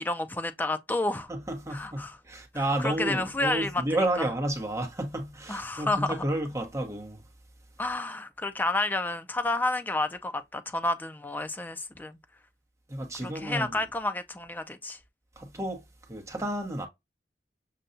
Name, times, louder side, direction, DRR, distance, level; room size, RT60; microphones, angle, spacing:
voice 1, 0.0-1.3 1.7-2.2 2.8-3.8 5.5-6.2 7.8-12.2 13.2-15.0, left 2 dB, 10° left, 0.4 m, -30 dB
voice 2, 1.3-7.2 12.9-13.7 15.4-16.9, right 1 dB, 15° right, 0.9 m, -31 dB
6.6 x 2.3 x 2.5 m
head